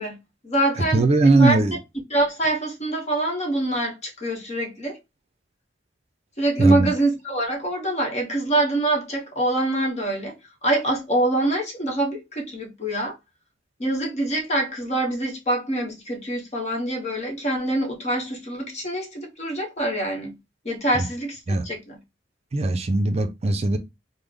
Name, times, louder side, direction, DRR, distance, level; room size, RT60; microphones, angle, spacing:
voice 1, 0.0-1.6 2.1-5.0 6.4-13.2 13.8-20.4 20.6-22.0, right 1 dB, 35° left, 1.0 m, -25 dB
voice 2, 0.9-1.8 6.6-6.9 20.9-21.1 21.5-21.6 22.5-23.8, right 2 dB, 35° right, 0.4 m, -19 dB
3.3 x 2.1 x 3.6 m
head